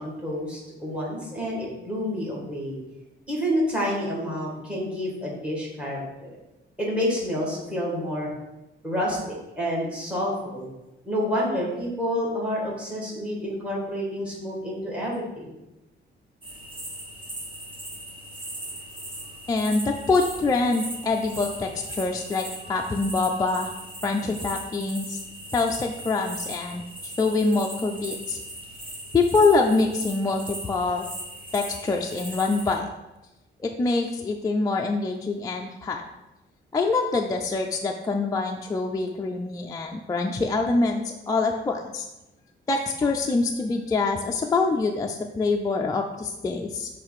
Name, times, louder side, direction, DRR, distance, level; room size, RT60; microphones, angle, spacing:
voice 1, 0.0-2.8 3.3-6.4 6.8-8.3 8.8-10.7 11.0-15.4, equal, 5° right, -4 dB, 1.7 m, -29 dB
sound 1, 16.4-32.8, right 1 dB, 25° right, 1.1 m, -39 dB
voice 2, 19.5-23.7 24.0-25.2 25.5-28.4 29.1-31.1 31.5-32.8 33.6-36.0 36.7-42.1 42.7-46.9, left 3 dB, 20° left, 1 dB, 0.3 m, -25 dB
6.6 x 3.2 x 4.8 m, 0.98 s
cardioid pair, 160°, 19 cm